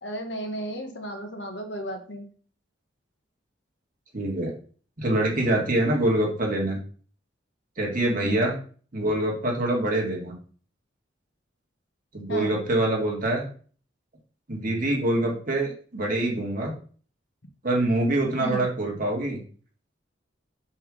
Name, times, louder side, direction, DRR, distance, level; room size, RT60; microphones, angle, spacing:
voice 1, 0.0-2.3 8.2-8.4 12.3-12.5 18.4-18.6, equal, 65° left, 5 dB, 1.3 m, -33 dB
voice 2, 4.1-4.5 5.0-6.8 7.8-8.5 8.9-10.3 12.1-13.4 14.5-16.7 17.6-19.4, right 1 dB, 45° right, -1 dB, 1.9 m, -25 dB
5.4 x 4.6 x 4.9 m, 0.43 s
head